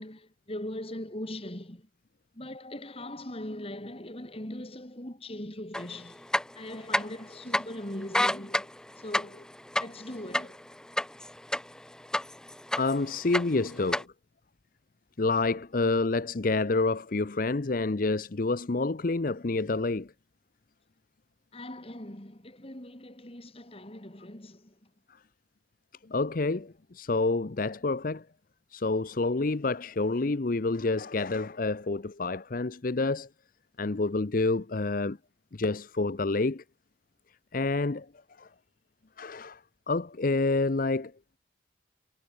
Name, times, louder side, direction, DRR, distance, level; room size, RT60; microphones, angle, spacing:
voice 1, 0.0-1.9 2.3-6.3 6.5-9.5 9.8-10.6 21.5-24.9, left 1 dB, 30° left, 2.7 m, -40 dB
sound 1, 5.7-5.8 6.2-7.3 7.5-7.6 8.0-11.8 12.1-13.0 13.3-14.0, left 1 dB, 5° left, 0.3 m, -28 dB
voice 2, 12.8-14.1 15.2-20.1 26.1-28.2 28.7-33.3 33.8-35.2 35.5-36.6 37.5-38.1 38.4-38.5 39.2-39.6 39.9-41.1, left 3 dB, 45° left, 0.7 m, -28 dB
head